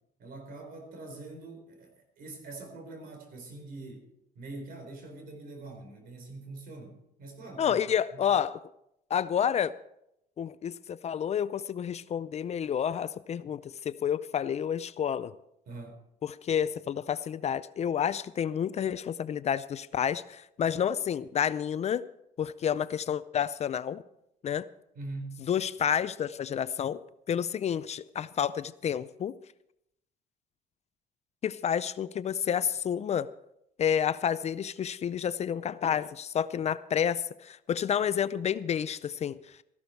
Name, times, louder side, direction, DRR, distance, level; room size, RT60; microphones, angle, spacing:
voice 1, 0.2-4.1 4.3-7.8 8.1-8.3 15.7-16.0 24.9-25.4, right 2 dB, 60° right, 4 dB, 4.4 m, -44 dB
voice 2, 7.6-8.6 9.1-9.7 10.4-15.3 16.2-22.0 22.4-24.0 24.4-24.7 25.5-27.0 27.3-29.3 31.4-33.3 33.8-39.4, left 8 dB, 40° left, 15 dB, 0.5 m, -29 dB
14.5 x 12.0 x 4.6 m, 0.80 s
cardioid pair, 110°, 17 cm